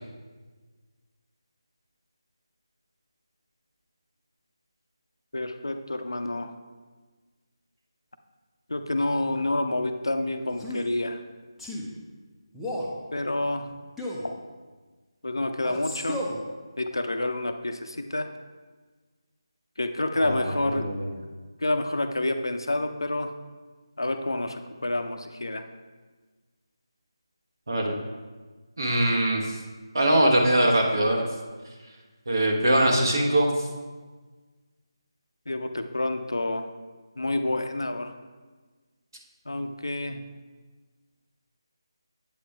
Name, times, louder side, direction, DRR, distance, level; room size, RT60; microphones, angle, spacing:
voice 1, 5.3-6.5 8.7-11.2 13.1-13.7 14.2-14.3 15.2-16.2 16.8-18.3 19.8-20.9 21.6-23.3 24.0-25.6 35.5-36.7 37.2-38.1 39.5-40.2, left 2 dB, 65° left, 7 dB, 0.5 m, -28 dB
Male speech man speaking, 10.5-10.9 11.6-11.9 12.5-13.0 14.0-14.3 15.6-16.4, left 1 dB, ahead, 0.5 m, -33 dB
voice 2, 20.2-21.1 27.7-28.0 28.8-29.5 29.9-31.2 32.3-33.5, right 1 dB, 50° right, 0 dB, 1.1 m, -22 dB
8.6 x 7.2 x 2.3 m, 1.4 s
figure-of-eight pair, 155°, 3 cm